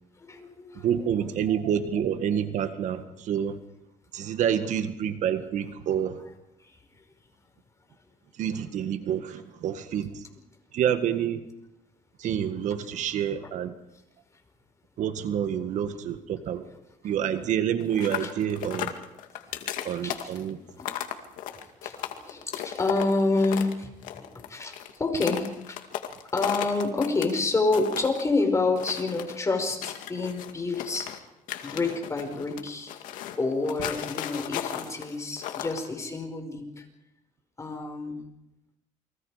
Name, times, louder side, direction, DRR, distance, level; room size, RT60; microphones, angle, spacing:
voice 1, 0.2-1.1 6.6-6.8 18.2-18.3 19.5-20.4 20.8-21.0 21.5-25.8 26.3-31.3 31.6-32.9 33.4-36.8 37.6-38.2, left 3 dB, 20° left, 5 dB, 5.3 m, -29 dB
voice 2, 0.8-3.6 4.1-6.2 8.4-10.3 10.7-11.5 12.2-13.7 15.0-16.7 17.0-18.9 19.8-20.6, right 9 dB, 65° right, 9 dB, 1.8 m, -28 dB
sound 1, 17.8-23.7 24.0-27.3 27.6-28.2 28.8-29.4 29.8-31.2 31.5-35.9, left 11 dB, 85° left, 2.2 m, -35 dB
29.0 x 23.5 x 5.1 m, 0.86 s
cardioid pair, 110°, 13 cm